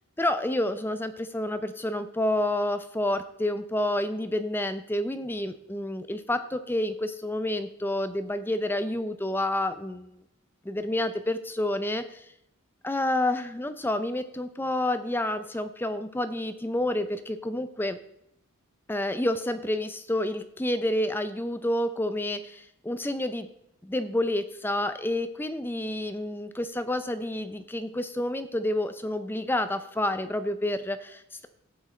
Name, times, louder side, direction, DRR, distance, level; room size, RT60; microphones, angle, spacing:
voice 1, 0.2-10.1 10.6-12.2 12.8-18.0 18.9-23.5 23.8-31.5, left 1 dB, 10° left, 10 dB, 0.5 m, -29 dB
10.5 x 7.3 x 4.3 m, 0.81 s
head